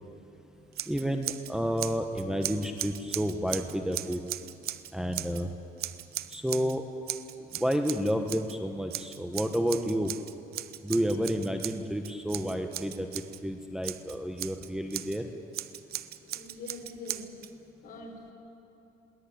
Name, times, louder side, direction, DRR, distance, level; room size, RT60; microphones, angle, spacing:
Scissors, 0.7-1.5 1.8-5.4 5.8-6.8 7.1-8.6 8.9-13.4 13.8-15.2 15.5-17.5, right 13 dB, 65° right, 0.8 m, -38 dB
voice 1, 0.9-4.2 4.9-5.5 6.3-6.9 7.5-10.1 10.8-15.3, equal, 5° right, 4 dB, 1.2 m, -30 dB
voice 2, 16.1-17.3 17.8-18.3, left 2 dB, 60° left, 1 dB, 5.1 m, -44 dB
22.0 x 18.0 x 8.7 m, 2.7 s
cardioid pair, 110°, 17 cm